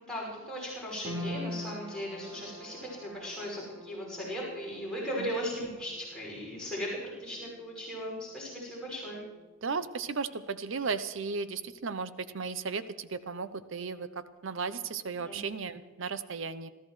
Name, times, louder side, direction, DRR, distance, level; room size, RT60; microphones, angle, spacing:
voice 1, 0.0-6.9 7.2-9.2 15.2-15.4, equal, 5° left, -6 dB, 5.7 m, -37 dB
sound 1, 1.0-13.5 13.7-14.7 15.1-15.2, left 1 dB, 25° right, 3.5 m, -46 dB
voice 2, 9.6-16.7, right 5 dB, 60° right, 13 dB, 0.6 m, -35 dB
25.0 x 13.5 x 3.2 m, 1.3 s
head